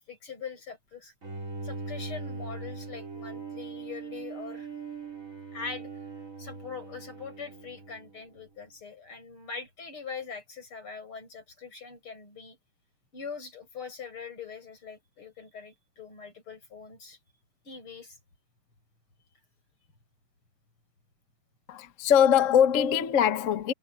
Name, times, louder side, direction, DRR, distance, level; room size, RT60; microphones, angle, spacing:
voice 1, 0.1-1.1 1.6-4.7 5.5-5.9 6.4-12.6 13.1-17.2 17.6-18.2, left 5 dB, 90° left, 7.9 m, -42 dB
Bowed string instrument, 1.2-8.5, right 4 dB, 35° right, 4.2 m, -40 dB
voice 2, 21.7-23.7, left 9 dB, 45° left, 1.2 m, -22 dB
omnidirectional pair, 2.3 m